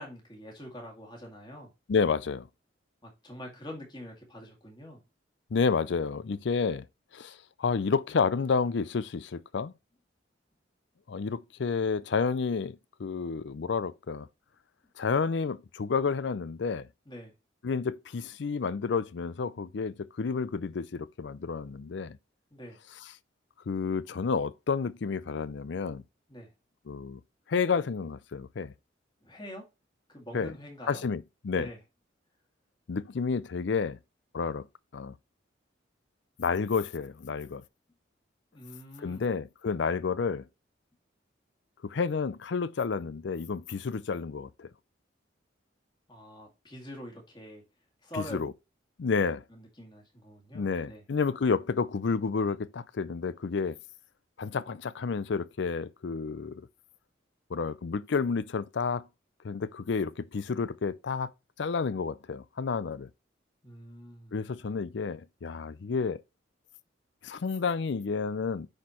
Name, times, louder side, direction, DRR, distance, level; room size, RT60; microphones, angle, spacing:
voice 1, 0.0-1.7 3.0-5.0 17.1-17.3 22.5-22.8 26.3-26.5 29.2-29.6 30.1-31.0 31.5-31.8 38.5-39.3 46.1-47.6 48.0-48.5 49.5-51.0 63.6-64.4, left 1 dB, 25° left, 2.3 m, -45 dB
voice 2, 1.9-2.5 5.5-6.9 7.1-9.7 11.1-14.3 15.0-16.9 17.6-22.2 23.7-26.0 26.9-27.2 27.5-28.7 30.3-30.5 30.9-31.7 32.9-34.0 34.3-34.7 34.9-35.1 36.4-37.6 39.0-40.4 41.8-44.7 48.3-48.5 49.0-49.4 50.5-53.8 54.4-56.7 57.5-59.0 59.4-61.3 61.6-63.1 64.3-66.2 67.2-68.7, left 5 dB, 65° left, 0.5 m, -30 dB
9.6 x 4.4 x 3.0 m
head